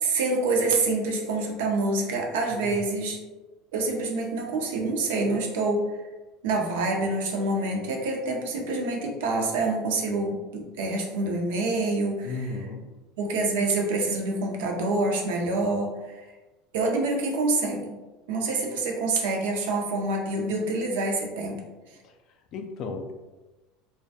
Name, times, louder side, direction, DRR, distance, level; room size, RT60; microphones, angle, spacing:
voice 1, 0.0-3.2 3.7-5.8 6.4-12.5 13.2-16.3 16.7-17.9 18.3-21.6, right 2 dB, 85° right, 1 dB, 0.5 m, -26 dB
voice 2, 12.2-13.0 22.0-22.1 22.5-23.1, left 3 dB, 50° left, 4 dB, 0.3 m, -35 dB
2.2 x 2.2 x 2.6 m, 1.1 s
supercardioid pair, 125°, 0 cm